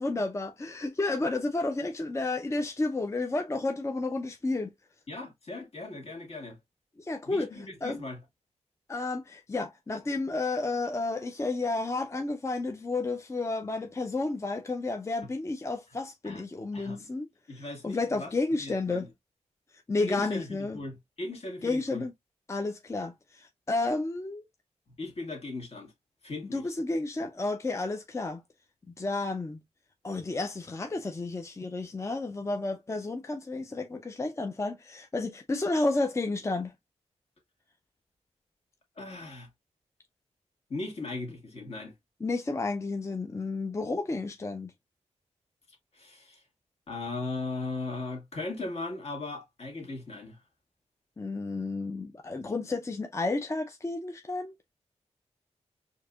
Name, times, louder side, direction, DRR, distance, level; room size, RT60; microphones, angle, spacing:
voice 1, 0.0-4.7 7.0-8.1 8.9-17.3 17.5-19.1 19.9-20.8 21.6-22.1 22.5-24.4 26.5-28.4 29.0-29.6 30.0-36.7 42.2-44.7 51.2-54.5, left 3 dB, 25° left, 0.5 m, -31 dB
voice 2, 5.1-6.6 7.3-8.2 16.2-16.4 16.7-17.1 17.5-18.3 18.6-19.1 20.1-22.0 25.0-25.9 26.2-26.6 39.0-39.5 40.7-41.9 45.9-46.4 46.9-50.4, left 2 dB, 60° left, 1.8 m, -38 dB
4.5 x 2.8 x 2.3 m
cardioid pair, 80°, 12 cm